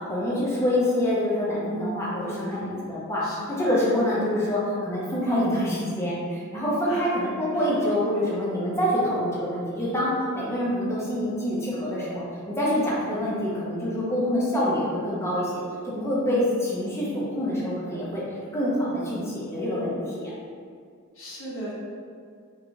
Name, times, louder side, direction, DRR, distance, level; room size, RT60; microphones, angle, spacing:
voice 1, 0.1-3.2 3.5-15.6 15.8-18.2 18.5-20.3, left 1 dB, 15° left, -7 dB, 0.8 m, -26 dB
voice 2, 2.2-2.7 3.2-3.7 6.8-7.1 21.1-21.7, equal, 65° left, -5 dB, 0.8 m, -37 dB
3.0 x 3.0 x 2.6 m, 2.2 s
head